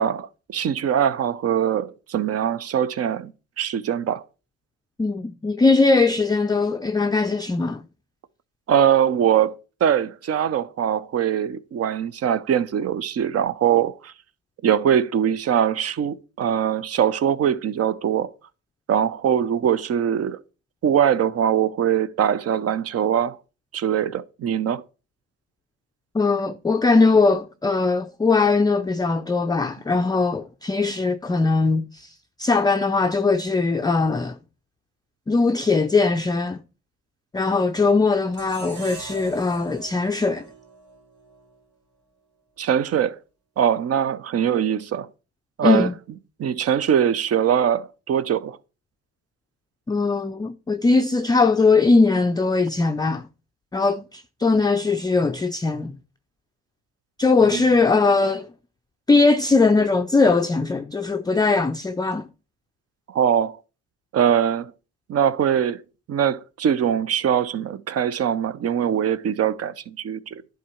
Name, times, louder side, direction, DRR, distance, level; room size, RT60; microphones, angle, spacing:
voice 1, 0.0-3.3 3.6-4.2 8.7-9.6 9.8-14.1 14.6-18.3 18.9-20.4 20.8-23.4 23.7-24.8 42.6-43.2 43.6-45.1 45.6-45.9 46.4-48.6 57.5-57.7 63.1-63.6 64.1-64.7 65.1-65.8 66.1-70.4, right 9 dB, 55° right, 0.6 m, -22 dB
voice 2, 5.0-7.8 26.1-34.4 35.3-36.6 37.3-40.4 45.6-45.9 49.9-53.3 53.7-56.0 57.2-58.5 59.1-62.3, left 3 dB, 15° left, 0.4 m, -20 dB
sound 1, 38.3-41.5, right 4 dB, 90° right, 2.9 m, -41 dB
10.5 x 3.8 x 4.3 m
cardioid pair, 90°, 30 cm